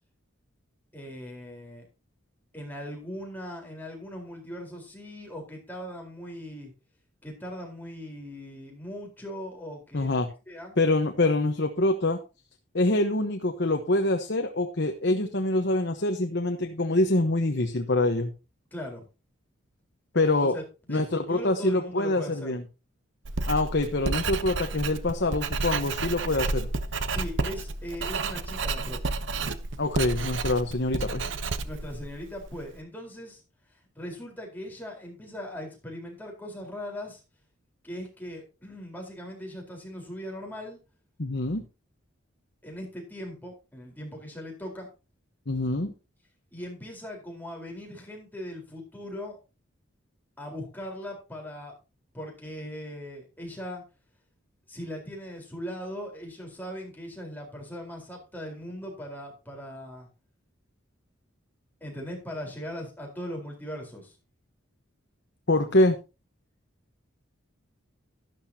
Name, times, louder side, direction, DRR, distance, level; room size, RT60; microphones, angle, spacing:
voice 1, 0.9-1.8 2.5-6.7 7.2-10.2 10.5-10.8 18.7-19.0 20.4-20.6 20.9-22.6 27.1-29.1 31.6-33.4 34.0-37.2 37.8-40.8 42.6-44.9 46.5-49.4 50.4-51.8 52.1-53.8 54.7-60.1 61.8-64.2, equal, 10° left, 0 dB, 4.2 m, -39 dB
voice 2, 9.9-10.3 10.8-12.2 12.7-18.3 20.1-20.5 20.9-22.6 23.5-26.7 29.8-31.2 41.2-41.6 45.5-45.9 65.5-66.0, left 2 dB, 55° left, 5 dB, 1.1 m, -25 dB
Writing, 23.2-32.7, right 3 dB, 65° right, 0.9 m, -31 dB
12.0 x 12.0 x 2.8 m, 0.30 s
head